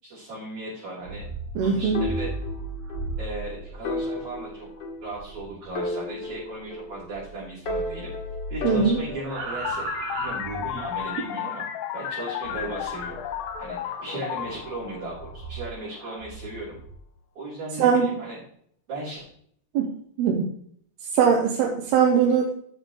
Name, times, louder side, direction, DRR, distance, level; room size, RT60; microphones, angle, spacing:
voice 1, 0.0-1.3 1.6-2.3 3.2-4.7 5.0-8.1 8.5-9.9 10.2-11.6 11.9-13.2 13.6-16.8 17.3-18.4 18.9-19.3, right 2 dB, 45° right, -11 dB, 6.0 m, -36 dB
sound 1, 0.9-7.4 7.6-11.0 12.4-13.7 14.3-17.0, right 2 dB, 65° right, 3.9 m, -37 dB
voice 2, 1.6-2.0 8.6-9.0 17.8-18.1 19.7-19.8 20.2-20.4 21.1-22.6, right 7 dB, 90° right, 0 dB, 3.2 m, -20 dB
sound 2, 1.9-3.1 3.4-3.5 3.8-5.4 5.8-7.2 7.7-9.5, left 2 dB, 50° left, 1.4 m, -33 dB
sound 3, 9.6-15.9, left 9 dB, 75° left, 2.4 m, -33 dB
13.0 x 7.7 x 3.2 m, 0.63 s
omnidirectional pair, 4.4 m